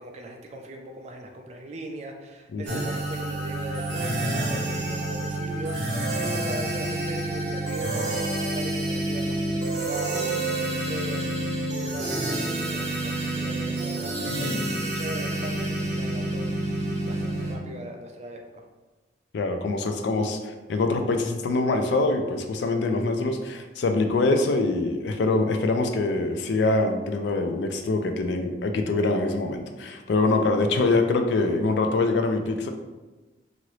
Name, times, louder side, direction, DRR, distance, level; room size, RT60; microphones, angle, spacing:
voice 1, 0.0-16.7 17.0-18.4, right 1 dB, 40° right, 3 dB, 0.4 m, -39 dB
sound 1, 2.7-17.6, right 2 dB, 80° right, 0.7 m, -28 dB
voice 2, 19.3-32.7, left 2 dB, 70° left, 5 dB, 0.4 m, -24 dB
2.8 x 2.6 x 3.1 m, 1.2 s
head